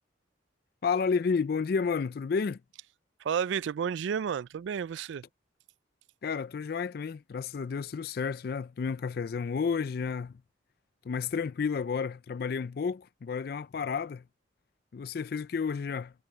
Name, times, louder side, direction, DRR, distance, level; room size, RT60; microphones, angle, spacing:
voice 1, 0.8-2.6 6.2-10.4 11.0-14.2 14.9-16.1, left 5 dB, 50° left, 0.3 m, -31 dB
voice 2, 3.2-5.2, right 7 dB, 70° right, 0.3 m, -31 dB
head